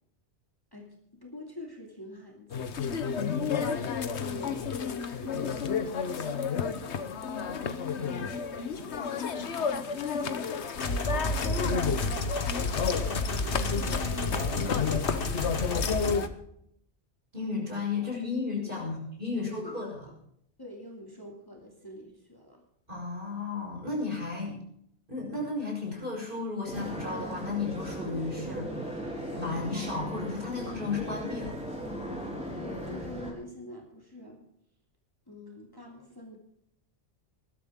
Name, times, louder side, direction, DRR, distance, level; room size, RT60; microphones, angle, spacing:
voice 1, 0.7-3.0 3.4-3.9 4.3-7.5 8.7-15.4 18.0-18.1 18.7-18.9 19.3-20.1 20.6-22.6 32.6-34.4 35.3-36.4, left 1 dB, 20° left, -1 dB, 2.7 m, -47 dB
sound 1, 2.5-16.3, left 6 dB, 65° left, 1.3 m, -31 dB
voice 2, 3.0-3.6 17.3-20.1 22.9-24.6 25.1-31.6, left 4 dB, 45° right, -2 dB, 6.3 m, -34 dB
sound 2, 10.7-16.1, left 2 dB, 50° left, 1.7 m, -31 dB
sound 3, 26.7-33.3, equal, 5° right, 4.4 m, -37 dB
20.5 x 12.5 x 3.7 m, 0.71 s
omnidirectional pair, 1.2 m